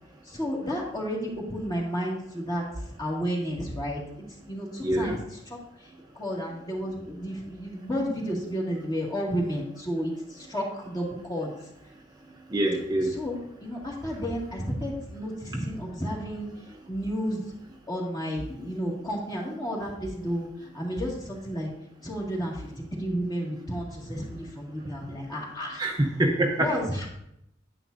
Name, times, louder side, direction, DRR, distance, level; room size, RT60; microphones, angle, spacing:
voice 1, 0.3-2.6 3.0-4.0 4.5-5.2 5.5-5.6 6.2-11.5 13.1-16.5 16.9-17.4 17.9-20.5 20.7-21.7 22.0-25.8 26.6-27.1, equal, 20° left, -3 dB, 2.1 m, -31 dB
voice 2, 4.8-5.2 12.5-13.1 25.8-26.7, right 1 dB, 20° right, 0 dB, 0.8 m, -25 dB
9.6 x 9.4 x 2.7 m, 0.78 s
head